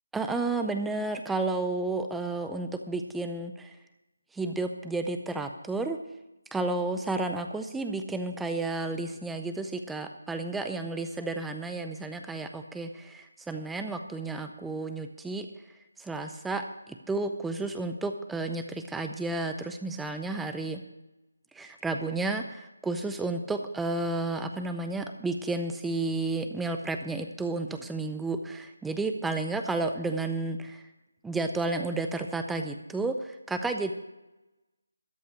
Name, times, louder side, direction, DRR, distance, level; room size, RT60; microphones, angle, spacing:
voice 1, 0.1-3.8 4.3-6.0 6.5-15.5 16.0-20.8 21.5-30.8 31.2-33.9, right 3 dB, 5° right, 6 dB, 0.5 m, -32 dB
13.5 x 5.5 x 9.1 m, 1.0 s
figure-of-eight pair, 165°, 0 cm